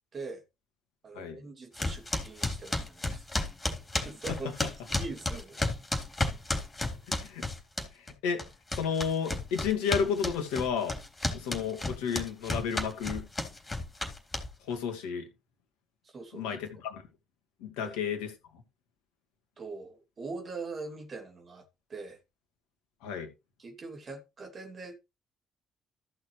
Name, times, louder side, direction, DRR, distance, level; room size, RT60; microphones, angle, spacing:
voice 1, 0.1-0.4 1.0-3.3 4.0-4.5 4.9-5.7 11.5-11.7 16.1-16.6 17.8-17.9 19.6-21.6 21.9-22.2 23.6-25.0, right 3 dB, 45° right, 2.6 m, -42 dB
sound 1, 1.8-8.1 8.4-14.7, left 2 dB, 25° left, 3.6 m, -32 dB
voice 2, 7.1-7.4 8.0-8.4 8.8-11.0 11.3-13.2 14.6-15.3 16.3-17.0 17.6-18.3 23.0-23.3, left 7 dB, 75° left, 1.9 m, -32 dB
14.0 x 6.5 x 3.3 m
figure-of-eight pair, 45°, 0 cm